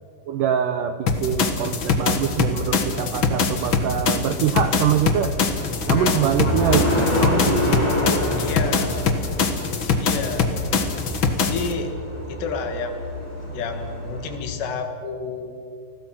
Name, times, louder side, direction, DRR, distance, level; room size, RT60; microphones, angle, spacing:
voice 1, 0.3-5.3 5.9-6.8 7.2-7.9, right 9 dB, 80° right, 8 dB, 1.9 m, -24 dB
sound 1, 1.1-11.7, left 4 dB, 65° left, 1.2 m, -23 dB
sound 2, 5.4-14.3, left 1 dB, 5° left, 4.8 m, -27 dB
voice 2, 5.9-6.3 8.4-9.2 9.9-10.5 11.4-11.9 12.3-13.1 13.4-15.5, left 4 dB, 85° left, 6 dB, 4.1 m, -30 dB
30.0 x 20.5 x 6.0 m, 2.5 s
omnidirectional pair, 4.8 m